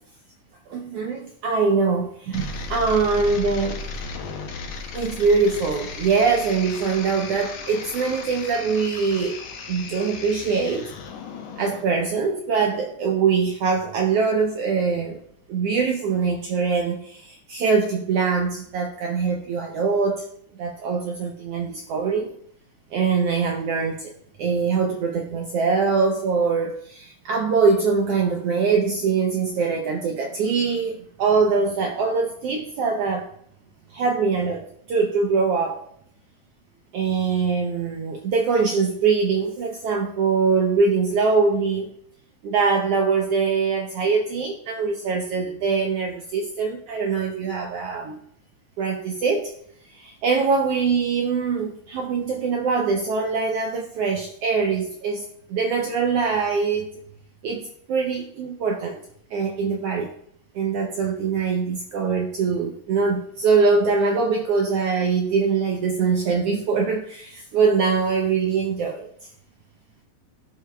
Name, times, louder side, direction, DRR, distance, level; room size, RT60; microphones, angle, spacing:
voice 1, 0.7-3.8 4.9-9.4 9.7-10.9 11.6-15.2 15.5-20.2 20.6-22.3 22.9-24.1 24.4-33.3 33.9-34.6 34.9-35.8 36.9-41.9 42.4-48.2 48.8-49.5 49.9-55.2 55.5-56.9 57.4-59.0 59.3-60.1 60.5-69.1, right 5 dB, 90° right, 2 dB, 1.3 m, -23 dB
sound 1, 2.3-11.8, left 4 dB, 65° left, 1.8 m, -35 dB
14.0 x 6.7 x 2.2 m, 0.69 s
omnidirectional pair, 3.6 m